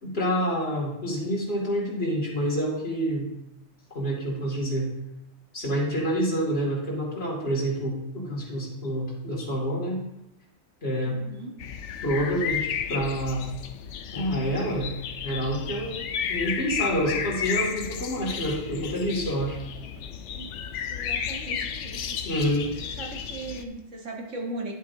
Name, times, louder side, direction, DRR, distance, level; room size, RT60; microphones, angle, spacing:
voice 1, 0.0-3.3 3.9-4.9 5.5-10.0 10.8-11.2 12.0-13.5 14.1-14.9 15.2-19.6 22.2-22.7, equal, 50° left, -4 dB, 2.6 m, -28 dB
voice 2, 11.0-11.7 19.8-19.9 20.2-20.5 20.9-22.2 22.8-24.7, right 2 dB, 80° right, 0 dB, 1.8 m, -38 dB
sound 1, 11.6-23.6, left 7 dB, 75° left, 0.9 m, -33 dB
10.5 x 7.5 x 2.7 m, 0.88 s
omnidirectional pair, 1.3 m